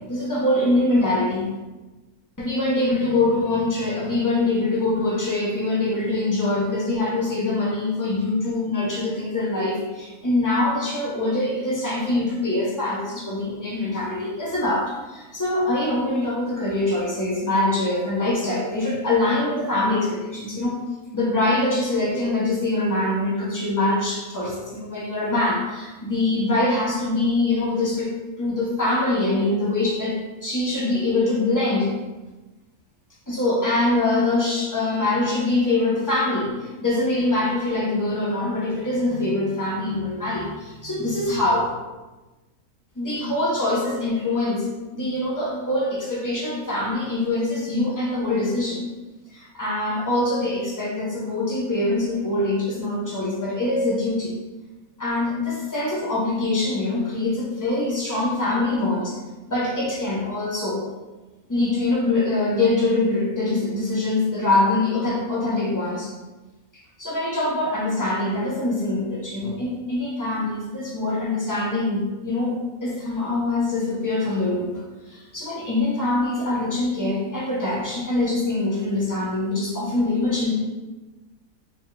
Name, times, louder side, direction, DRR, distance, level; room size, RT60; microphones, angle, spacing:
voice 1, 0.1-1.5 2.4-20.8 21.1-28.1 28.4-31.9 33.3-41.7 42.9-44.7 44.9-48.8 49.3-54.3 55.0-59.2 59.5-60.8 61.5-66.1 66.7-74.7 75.0-80.5, left 2 dB, 15° left, -5 dB, 0.7 m, -24 dB
4.3 x 2.8 x 3.3 m, 1.2 s
omnidirectional pair, 1.5 m